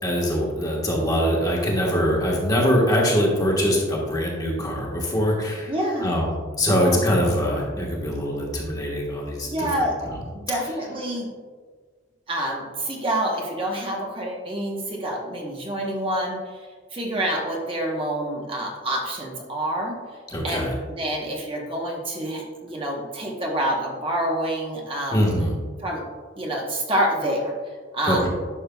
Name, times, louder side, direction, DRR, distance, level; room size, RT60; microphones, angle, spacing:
voice 1, 0.0-5.7 6.0-6.3 6.6-9.9 20.3-20.7 25.1-25.5 28.0-28.3, equal, 20° left, -3 dB, 1.3 m, -23 dB
voice 2, 5.7-6.1 6.7-7.0 9.5-10.0 10.5-11.3 12.3-20.0 20.4-25.3 25.8-26.0 26.4-27.5 27.9-28.3, right 1 dB, 25° right, -1 dB, 1.0 m, -27 dB
11.0 x 6.4 x 2.3 m, 1.5 s
head